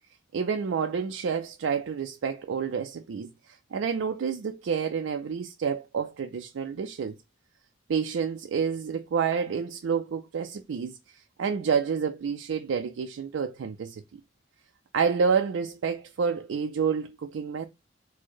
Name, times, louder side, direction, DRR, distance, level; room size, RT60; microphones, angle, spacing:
voice 1, 0.3-7.2 7.9-14.0 14.9-17.7, right 6 dB, 75° right, 0.4 m, -29 dB
4.4 x 2.1 x 4.5 m
head